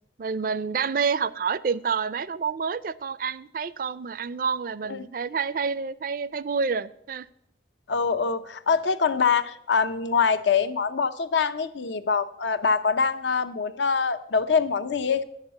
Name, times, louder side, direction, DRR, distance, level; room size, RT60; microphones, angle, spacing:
voice 1, 0.2-7.3, right 5 dB, 50° right, 0.4 m, -28 dB
voice 2, 7.9-15.2, left 5 dB, 80° left, 0.7 m, -24 dB
10.0 x 6.6 x 7.9 m
head